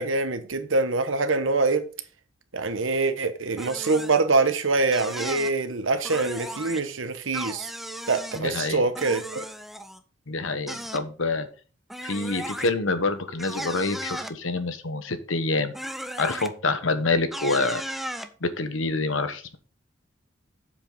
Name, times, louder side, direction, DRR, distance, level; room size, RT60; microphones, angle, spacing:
voice 1, 0.0-1.8 2.5-7.7 8.1-9.4, right 3 dB, 85° right, 1.1 m, -24 dB
sound 1, 3.6-4.2 4.9-5.5 6.0-6.8 7.3-8.4 9.0-10.0 10.7-11.0 11.9-12.7 13.4-14.4 15.7-16.5 17.3-18.3, equal, ahead, 0.6 m, -35 dB
voice 2, 8.3-8.9 10.3-11.5 12.0-15.7 16.2-17.8 18.4-19.6, left 3 dB, 80° left, 1.1 m, -27 dB
7.6 x 7.4 x 3.8 m
head